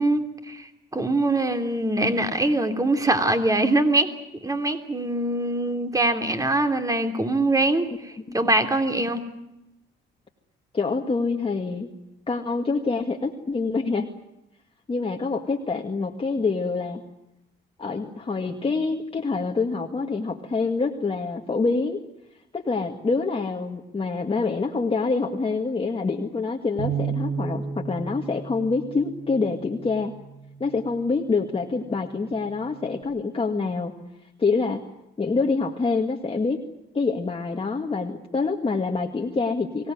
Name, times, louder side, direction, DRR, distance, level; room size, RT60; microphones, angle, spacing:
voice 1, 0.0-4.1 4.4-9.2, right 2 dB, 15° right, 6 dB, 3.2 m, -23 dB
voice 2, 10.7-11.9 12.3-14.1 14.9-17.0 17.8-22.0 22.5-30.1 30.6-33.9 34.4-34.8 35.2-36.6 36.9-39.9, left 4 dB, 30° left, 2 dB, 2.0 m, -26 dB
Bass guitar, 26.8-31.2 31.9-33.0, right 6 dB, 55° right, 7.8 m, -34 dB
24.0 x 18.0 x 9.4 m, 0.91 s
cardioid pair, 90°, 20 cm